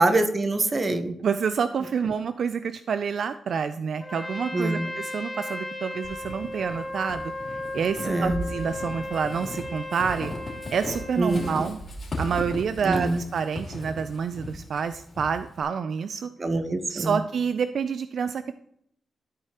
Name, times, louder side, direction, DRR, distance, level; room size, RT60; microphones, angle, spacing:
voice 1, 0.0-1.2 4.5-4.9 8.0-8.4 11.2-11.7 12.8-13.2 16.4-17.2, right 2 dB, 35° right, 8 dB, 0.9 m, -25 dB
voice 2, 1.2-7.3 7.7-10.3 10.7-11.8 12.2-16.3 16.9-18.5, right 6 dB, 65° right, 11 dB, 0.3 m, -28 dB
Trumpet, 4.0-11.7, left 1 dB, 15° left, 1.4 m, -36 dB
Walk footsteps / Squeak, 6.0-15.6, left 1 dB, 45° left, 2.7 m, -37 dB
13.0 x 4.8 x 2.9 m, 0.71 s
cardioid pair, 80°, 0 cm